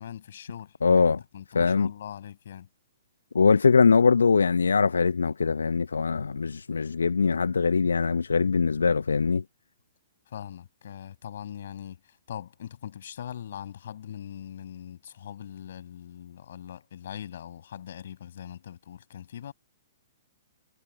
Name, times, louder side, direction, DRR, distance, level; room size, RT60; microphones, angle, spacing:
voice 1, 0.0-1.0 1.3-2.7 10.3-19.5, left 9 dB, 60° left, 6.4 m, -41 dB
voice 2, 0.8-1.2 1.5-1.9 3.3-9.4, left 5 dB, 75° left, 0.6 m, -22 dB
figure-of-eight pair, 120°, 0 cm